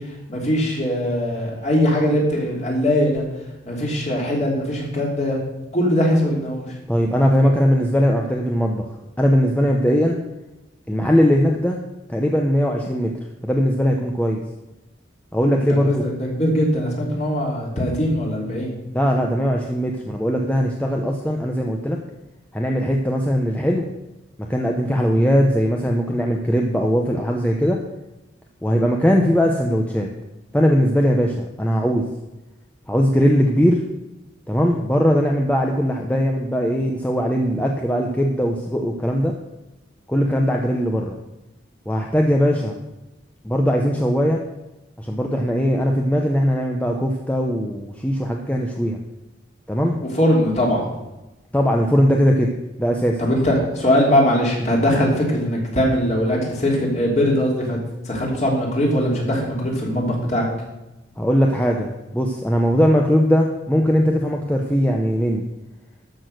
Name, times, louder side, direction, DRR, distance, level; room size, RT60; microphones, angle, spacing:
voice 1, 0.0-3.2 3.6-5.4 5.7-6.7 15.8-18.8 50.1-50.9 53.2-57.8 58.0-60.5, equal, 35° left, -2 dB, 3.0 m, -21 dB
voice 2, 6.9-8.9 9.2-10.2 10.9-11.8 12.1-13.1 13.4-14.4 15.3-16.0 18.9-22.0 22.5-23.9 24.5-27.8 28.6-30.1 30.5-32.0 32.9-33.8 34.5-39.3 40.1-41.2 41.9-42.8 43.4-44.4 45.0-49.0 49.7-50.0 51.5-52.5 52.8-53.2 61.2-65.4, equal, 10° left, 1 dB, 0.8 m, -19 dB
13.0 x 6.3 x 6.3 m, 0.98 s
head